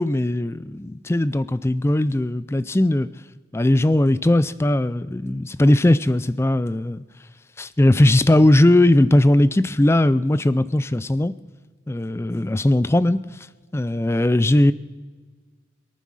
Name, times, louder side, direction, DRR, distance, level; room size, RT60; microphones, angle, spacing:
voice 1, 0.0-3.1 3.5-7.0 7.6-11.3 11.9-13.2 13.7-14.7, left 1 dB, 15° left, 16 dB, 0.4 m, -18 dB
22.5 x 9.3 x 6.3 m, 1.5 s
head